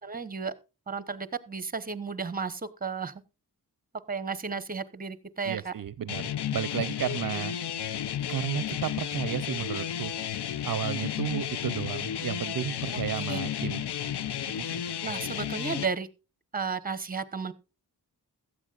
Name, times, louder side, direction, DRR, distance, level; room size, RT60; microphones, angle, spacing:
voice 1, 0.0-0.5 0.9-3.1 4.1-5.7 7.3-7.4 13.3-13.4 15.0-16.1 16.5-17.5, right 5 dB, 20° right, 1.0 m, -33 dB
voice 2, 5.4-7.5 8.3-10.1 10.6-13.8 14.6-14.8, right 9 dB, 55° right, 0.5 m, -33 dB
sound 1, 6.1-15.9, left 10 dB, 85° left, 0.7 m, -33 dB
16.5 x 13.0 x 2.4 m
wide cardioid pair, 145°, 40 cm